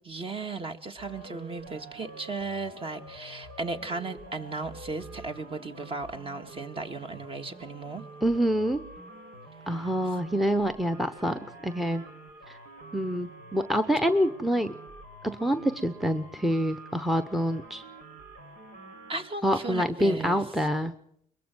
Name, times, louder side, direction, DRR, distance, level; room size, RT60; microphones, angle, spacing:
voice 1, 0.0-8.1 9.6-10.2 19.1-20.7, right 3 dB, 35° right, 1.8 m, -36 dB
sound 1, 1.0-19.3, right 2 dB, 85° right, 3.5 m, -47 dB
voice 2, 8.2-8.8 9.7-12.0 12.9-14.7 15.2-17.8 19.4-20.9, equal, ahead, 0.9 m, -26 dB
22.5 x 22.0 x 6.2 m
cardioid pair, 110°, 17 cm